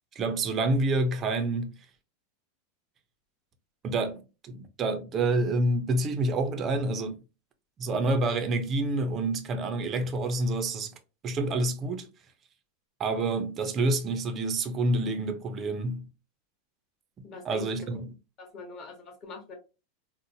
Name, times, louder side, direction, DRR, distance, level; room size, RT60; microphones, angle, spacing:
voice 1, 0.2-1.8 3.8-7.2 7.8-10.9 11.2-12.1 13.0-16.1 17.5-18.1, right 2 dB, 20° right, 0.5 m, -28 dB
voice 2, 17.2-18.0 18.4-19.5, left 4 dB, 25° left, 0.9 m, -43 dB
4.0 x 2.0 x 2.6 m
supercardioid pair, 170°, 0 cm